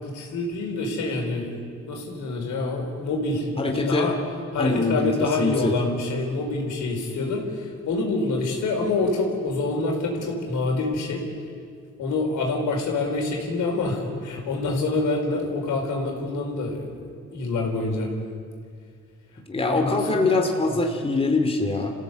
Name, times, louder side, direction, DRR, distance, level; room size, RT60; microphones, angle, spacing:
voice 1, 0.0-1.5 1.9-4.1 4.5-11.2 12.0-17.0 17.3-18.1 19.6-20.7, left 3 dB, 80° left, 1 dB, 5.0 m, -26 dB
voice 2, 3.6-4.1 4.6-5.1 5.4-5.8 19.5-21.9, left 3 dB, 20° left, 3 dB, 2.7 m, -23 dB
27.5 x 16.0 x 8.2 m, 2.1 s
cardioid pair, 90°, 30 cm